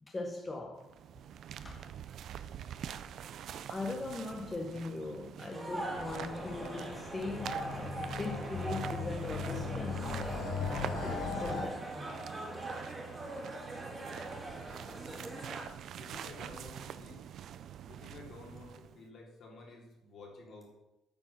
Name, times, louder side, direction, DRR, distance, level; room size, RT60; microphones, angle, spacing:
voice 1, 0.0-1.0 1.6-1.8 3.7-10.0 10.5-12.1, left 3 dB, 15° left, 0.8 m, -40 dB
sound 1, 0.8-19.0, right 9 dB, 60° right, 0.5 m, -46 dB
sound 2, 5.5-15.6, right 2 dB, 15° right, 1.9 m, -42 dB
sound 3, 5.9-11.6, left 4 dB, 75° left, 3.5 m, -39 dB
voice 2, 16.0-17.2 17.8-20.7, left 3 dB, 55° left, 2.9 m, -52 dB
9.0 x 6.6 x 5.8 m
cardioid pair, 140°, 0 cm